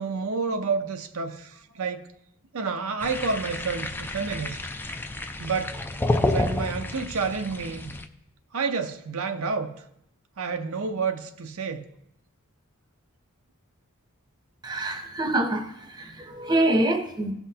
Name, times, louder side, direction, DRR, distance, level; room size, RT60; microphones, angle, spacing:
voice 1, 0.0-2.1 2.5-4.6 5.4-5.8 6.2-7.9 8.5-9.7 10.4-11.9, right 4 dB, 70° right, 7 dB, 0.6 m, -29 dB
sound 1, 3.0-8.1, left 1 dB, 10° left, 0.3 m, -30 dB
voice 2, 14.6-17.3, right 1 dB, 20° right, 6 dB, 0.7 m, -25 dB
16.5 x 5.8 x 2.8 m, 0.79 s
head